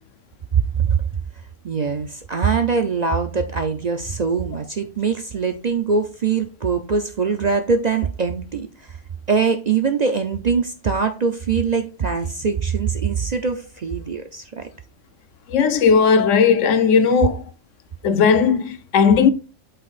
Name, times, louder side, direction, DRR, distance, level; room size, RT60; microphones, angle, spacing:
voice 1, 1.6-8.9 9.3-14.6, right 5 dB, 45° right, 0.6 m, -22 dB
voice 2, 15.5-17.4 18.0-19.3, left 6 dB, 80° left, 1.1 m, -16 dB
8.4 x 5.8 x 2.4 m
omnidirectional pair, 1.3 m